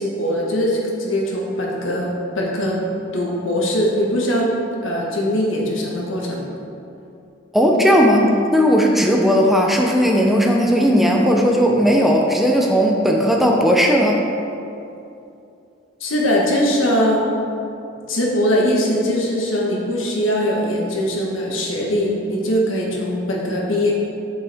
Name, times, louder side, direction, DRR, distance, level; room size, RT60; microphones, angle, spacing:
voice 1, 0.0-2.1 2.3-2.8 3.1-4.5 4.8-6.4 16.0-17.2 18.1-23.9, equal, 75° left, -2 dB, 1.4 m, -21 dB
voice 2, 7.5-14.2, equal, ahead, -1 dB, 0.5 m, -16 dB
7.7 x 7.0 x 3.5 m, 2.7 s
head